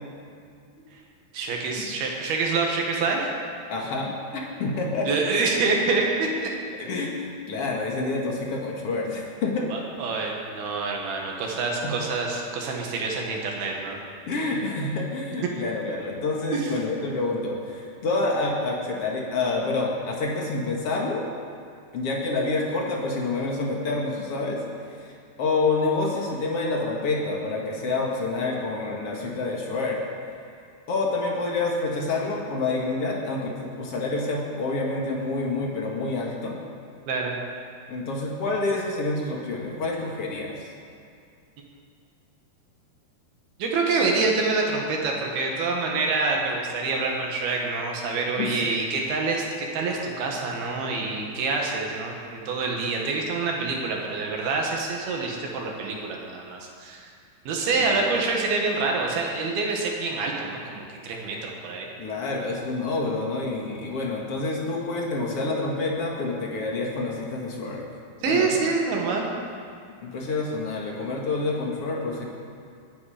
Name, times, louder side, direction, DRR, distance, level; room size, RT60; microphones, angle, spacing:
voice 1, 1.3-3.3 5.1-6.5 9.7-14.0 15.6-15.7 16.5-16.7 37.1-37.4 43.6-57.1 57.5-61.9 68.2-69.3, right 3 dB, 65° right, 0 dB, 3.4 m, -26 dB
voice 2, 3.7-5.1 6.7-9.7 11.8-11.9 14.3-21.3 21.9-25.1 25.4-30.0 30.9-36.6 37.9-40.7 48.4-48.6 51.0-51.1 57.8-58.1 62.0-67.8 68.2-68.6 70.0-72.3, left 3 dB, 45° left, -1 dB, 2.1 m, -28 dB
21.0 x 10.0 x 5.1 m, 2.4 s
omnidirectional pair, 4.9 m